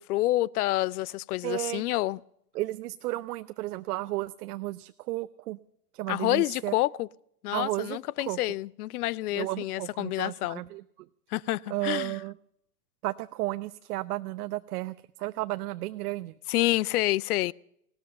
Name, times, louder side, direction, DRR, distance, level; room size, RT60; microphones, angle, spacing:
voice 1, 0.0-2.2 6.1-7.1 7.4-10.6 11.3-12.2 16.5-17.5, left 17 dB, 65° left, 0.5 m, -28 dB
voice 2, 1.4-1.8 2.5-5.6 5.9-6.7 7.5-8.4 9.3-10.8 11.7-12.3 13.0-16.3, right 17 dB, 65° right, 0.6 m, -33 dB
16.5 x 13.0 x 6.6 m
hypercardioid pair, 120°, 50 cm